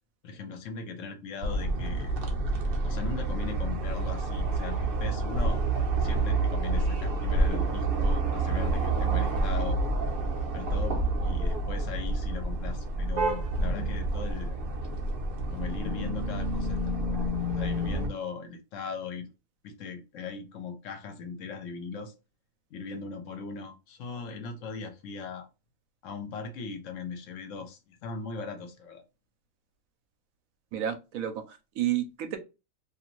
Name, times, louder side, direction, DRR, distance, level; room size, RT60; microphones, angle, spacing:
voice 1, 0.2-2.1 2.8-5.6 6.0-9.8 10.5-14.5 15.5-17.2 17.5-19.3 19.6-22.1 22.7-25.5 26.0-29.0, left 5 dB, 70° left, 7 dB, 0.9 m, -39 dB
sound 1, 1.4-18.1, right 2 dB, 55° right, 0.7 m, -28 dB
voice 2, 30.7-32.4, right 11 dB, 80° right, 7 dB, 1.0 m, -31 dB
2.5 x 2.5 x 2.9 m, 0.28 s
omnidirectional pair, 1.5 m